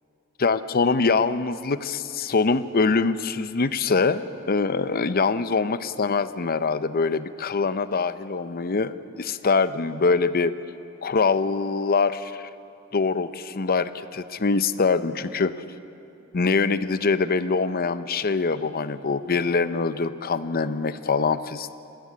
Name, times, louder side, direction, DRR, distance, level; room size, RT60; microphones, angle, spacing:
voice 1, 0.4-10.5 11.0-12.5 12.9-15.5 16.3-21.7, left 4 dB, 45° left, 13 dB, 0.7 m, -24 dB
20.0 x 15.5 x 9.7 m, 2.9 s
head